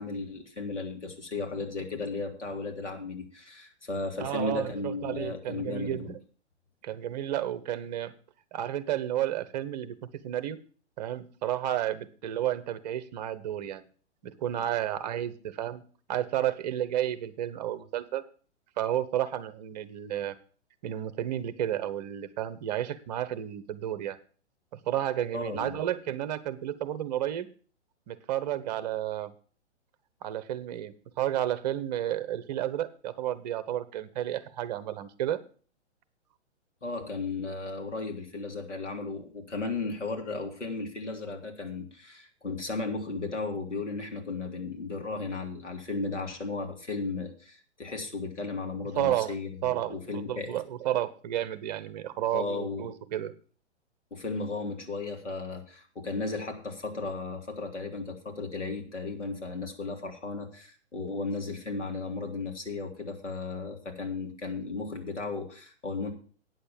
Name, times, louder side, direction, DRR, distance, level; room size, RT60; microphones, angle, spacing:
voice 1, 0.0-6.1 25.3-25.8 36.8-50.6 52.3-52.9 54.1-66.1, left 3 dB, 80° left, 3 dB, 2.6 m, -35 dB
voice 2, 4.2-6.2 6.8-8.1 8.5-10.0 10.2-10.6 11.0-13.8 14.2-15.8 16.1-18.2 18.8-20.3 20.8-24.2 24.9-27.5 28.1-29.3 30.2-35.4 48.9-49.4 49.6-53.3, right 12 dB, 35° right, 14 dB, 0.9 m, -31 dB
9.3 x 6.7 x 7.4 m, 0.41 s
figure-of-eight pair, 120°, 35 cm